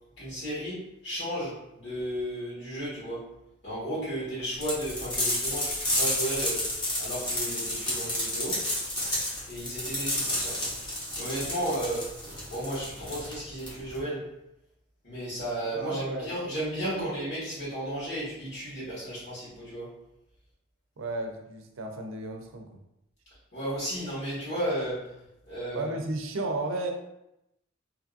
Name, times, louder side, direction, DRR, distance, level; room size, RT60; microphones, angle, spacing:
voice 1, 0.2-3.3 3.6-6.7 7.0-8.6 9.5-10.6 11.2-12.2 12.5-14.3 15.0-19.9 23.5-25.1 25.5-25.8, right 1 dB, 60° left, -10 dB, 1.4 m, -34 dB
sound 1, 4.6-14.0, left 1 dB, 25° left, 0.9 m, -31 dB
voice 2, 15.4-16.4 16.8-17.1 21.0-22.8 25.7-26.9, right 2 dB, 80° right, 3 dB, 0.5 m, -34 dB
2.7 x 2.6 x 2.4 m, 0.84 s
head